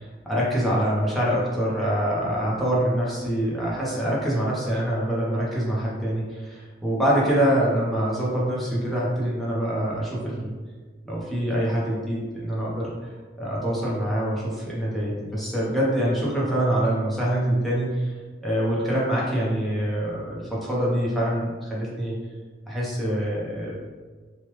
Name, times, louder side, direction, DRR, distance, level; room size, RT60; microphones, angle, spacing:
voice 1, 0.0-10.5 11.0-12.9 13.4-18.1 18.4-22.2 22.7-23.8, equal, ahead, -7 dB, 0.7 m, -25 dB
3.2 x 2.3 x 3.0 m, 1.4 s
head